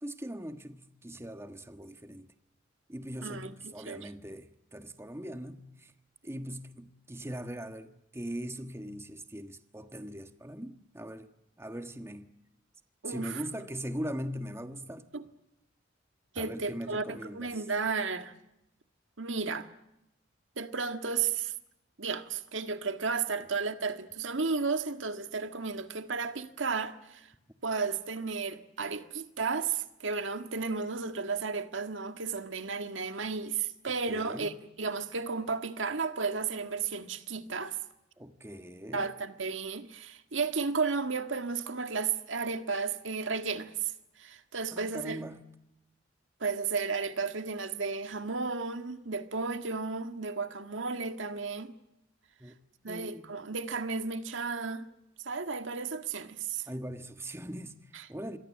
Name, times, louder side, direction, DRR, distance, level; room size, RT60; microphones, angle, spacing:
voice 1, 0.0-2.3 2.9-5.9 6.2-11.3 11.6-12.3 13.0-15.1 16.3-17.6 34.1-34.5 38.2-39.1 44.7-45.4 52.4-52.5 52.8-53.3 56.7-57.8 58.1-58.4, equal, 15° right, 1.4 m, -40 dB
voice 2, 3.2-4.1 13.0-13.4 15.1-15.2 16.3-18.3 19.2-19.7 20.6-21.5 22.0-27.3 27.6-37.8 38.9-43.9 44.2-45.2 46.4-51.7 52.8-54.9 55.2-56.7 57.9-58.1, right 4 dB, 85° right, 1.7 m, -33 dB
27.5 x 23.0 x 7.5 m
head